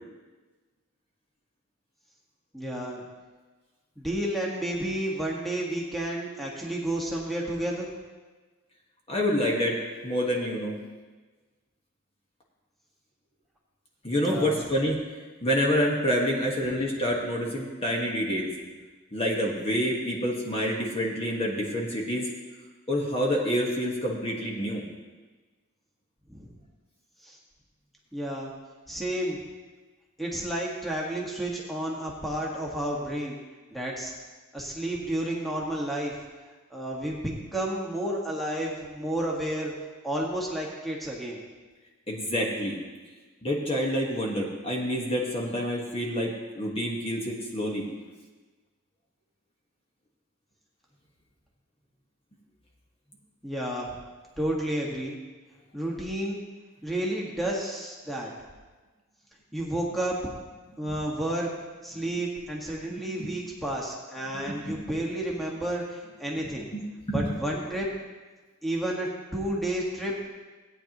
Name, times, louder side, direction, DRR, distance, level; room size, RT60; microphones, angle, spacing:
voice 1, 2.5-3.0 4.0-7.9 14.2-14.6 26.3-26.5 27.2-27.4 28.1-28.5 28.9-29.4 30.2-33.4 33.7-34.1 34.5-36.1 36.7-39.7 40.0-41.4 53.4-53.9 54.4-55.2 55.7-56.4 56.8-58.3 59.5-60.3 60.8-61.5 61.8-66.7 67.1-67.9 68.6-70.3, right 1 dB, ahead, -3 dB, 1.5 m, -31 dB
voice 2, 9.1-9.8 10.0-10.8 14.0-15.0 15.4-18.5 19.1-22.2 22.9-24.8 42.1-42.8 43.4-47.9 63.2-63.3 64.4-64.8 66.7-66.8 67.1-67.3, equal, 25° left, -2 dB, 1.5 m, -27 dB
17.0 x 9.3 x 3.0 m, 1.3 s
head